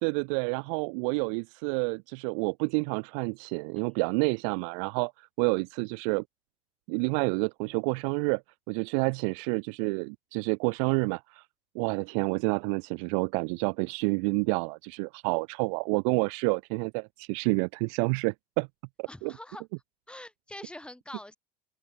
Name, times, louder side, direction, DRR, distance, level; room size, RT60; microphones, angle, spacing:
voice 1, 0.0-6.2 6.9-8.4 8.7-11.4 11.7-18.7 19.0-19.3, right 38 dB, 55° right, 0.5 m, -29 dB
voice 2, 19.1-19.6 20.1-21.4, left 1 dB, 5° left, 5.1 m, -44 dB
open air
figure-of-eight pair, 75°, 21 cm